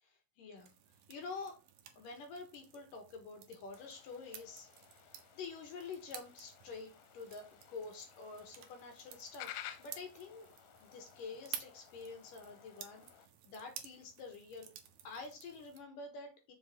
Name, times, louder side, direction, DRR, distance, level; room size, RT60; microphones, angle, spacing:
voice 1, 0.0-0.7 1.1-1.6 2.0-10.5 10.8-14.7 15.0-16.5, left 4 dB, 60° left, 4 dB, 2.6 m, -48 dB
sound 1, 0.6-15.8, right 10 dB, 70° right, 2.5 m, -53 dB
sound 2, 3.7-13.3, left 12 dB, 85° left, 3.0 m, -54 dB
7.2 x 6.6 x 3.7 m, 0.29 s
omnidirectional pair, 5.3 m